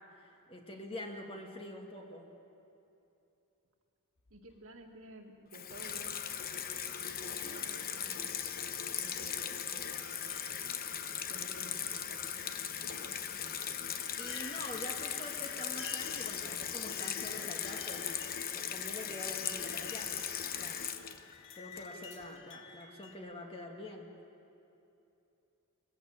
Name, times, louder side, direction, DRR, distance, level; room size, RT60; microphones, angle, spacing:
voice 1, 0.2-2.3 14.2-20.3 20.6-20.9 21.5-24.1, left 1 dB, 25° left, 1 dB, 2.1 m, -45 dB
sound 1, 4.2-5.0 6.2-6.3 7.3-7.6 8.2-8.4 9.0-9.1 10.3-11.0 11.4-12.2 13.3-13.4 14.0-23.1, left 6 dB, 60° left, 1.4 m, -51 dB
voice 2, 4.3-6.2 7.0-8.7 9.0-10.4 11.3-13.2, right 2 dB, 65° right, 2 dB, 2.1 m, -54 dB
Water tap faucet / Sink (filling or washing), 5.5-22.2, left 8 dB, 45° left, 0.9 m, -38 dB
22.0 x 15.0 x 8.8 m, 2.8 s
head